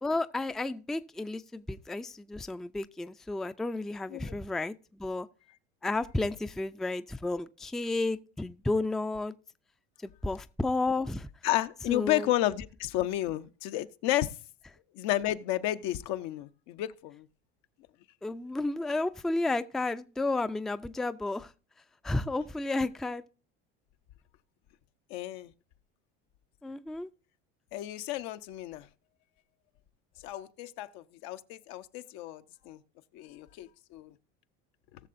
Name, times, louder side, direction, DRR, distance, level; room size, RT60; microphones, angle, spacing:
voice 1, 0.0-5.3 5.8-9.3 10.0-11.3 11.9-12.3 18.2-21.5 22.0-23.2 26.6-27.1, left 2 dB, ahead, 0.3 m, -32 dB
voice 2, 11.4-14.3 14.9-17.3 25.1-25.5 27.7-28.9 30.2-32.8 33.1-34.1, left 14 dB, 75° left, 0.8 m, -32 dB
19.0 x 6.7 x 2.5 m
supercardioid pair, 95°, 29 cm